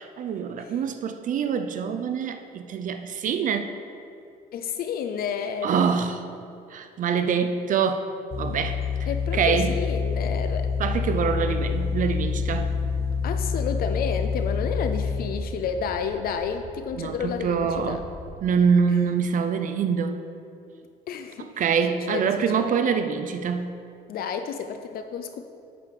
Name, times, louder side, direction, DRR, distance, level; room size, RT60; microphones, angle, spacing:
voice 1, 0.0-3.7 5.6-6.2 6.7-8.0 8.4-8.8 9.3-9.8 10.8-12.7 17.0-18.0 18.4-20.3 21.4-23.8, right 6 dB, 50° right, 9 dB, 0.5 m, -25 dB
voice 2, 4.5-5.9 9.1-10.7 13.2-18.0 21.1-21.6 22.1-22.8 24.1-25.4, left 7 dB, 60° left, 7 dB, 0.6 m, -31 dB
sound 1, 8.3-15.1, left 5 dB, 35° left, 1.4 m, -27 dB
sound 2, 9.9-18.3, equal, 30° right, 1.9 m, -43 dB
8.5 x 6.6 x 5.3 m, 2.6 s
cardioid pair, 110°, 17 cm